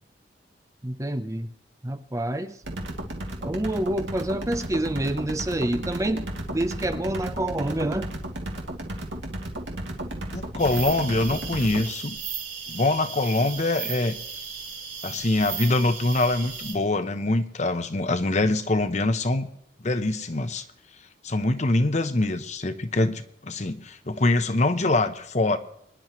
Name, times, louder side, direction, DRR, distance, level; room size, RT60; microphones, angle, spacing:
voice 1, 0.8-1.5 1.8-2.5 3.4-8.1, right 1 dB, 20° right, 9 dB, 0.7 m, -27 dB
sound 1, 2.6-11.8, right 1 dB, 85° right, 2.5 m, -34 dB
voice 2, 10.3-12.1 12.7-14.2 15.0-19.5 19.8-20.6 21.2-25.6, left 2 dB, 40° left, 10 dB, 0.9 m, -24 dB
sound 2, 10.6-16.7, right 7 dB, 50° right, 4.4 m, -36 dB
24.0 x 10.5 x 3.2 m, 0.74 s
head